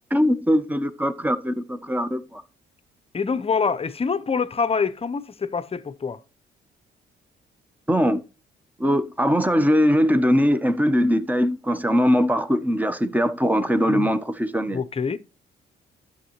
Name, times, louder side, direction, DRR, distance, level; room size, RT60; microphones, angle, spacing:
voice 1, 0.1-2.4 7.9-8.2 8.8-14.8, equal, 10° right, 0.9 m, -21 dB
voice 2, 3.1-6.2 13.9-14.1 14.7-15.2, left 5 dB, 30° left, 0.7 m, -25 dB
11.5 x 7.3 x 3.0 m
cardioid pair, 90°, 20 cm